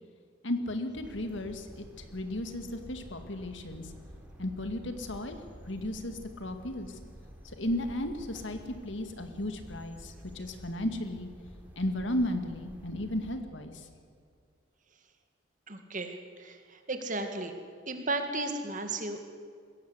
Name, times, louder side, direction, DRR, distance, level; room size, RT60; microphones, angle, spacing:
voice 1, 0.4-3.9 4.4-5.4 5.7-7.0 7.4-11.3 11.8-13.9, left 1 dB, 70° left, 7 dB, 2.0 m, -34 dB
sound 1, 0.9-13.3, equal, 10° right, 3.3 m, -50 dB
voice 2, 15.7-17.5 17.9-19.3, right 2 dB, 40° right, 6 dB, 2.1 m, -35 dB
21.5 x 16.5 x 8.1 m, 2.2 s
head